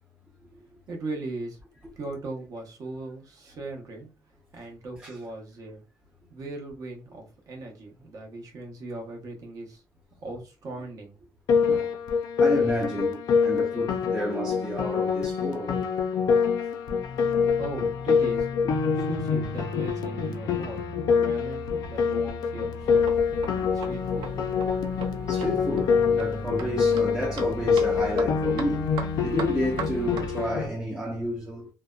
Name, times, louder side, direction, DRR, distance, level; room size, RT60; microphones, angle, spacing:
voice 1, 0.4-1.6 2.0-4.1 4.5-5.8 6.3-9.8 10.2-11.2 17.3-18.5 18.9-23.1 23.5-24.3, right 2 dB, 45° right, 0.8 m, -39 dB
Piano, 11.5-30.7, left 6 dB, 55° left, 0.4 m, -25 dB
voice 2, 12.4-15.8 25.3-28.8 29.2-31.7, equal, 10° right, 0.4 m, -31 dB
sound 1, 16.9-30.6, left 2 dB, 70° right, 1.1 m, -39 dB
sound 2, 22.8-30.3, right 3 dB, 90° right, 0.5 m, -38 dB
2.6 x 2.0 x 2.3 m
cardioid pair, 180°, 8 cm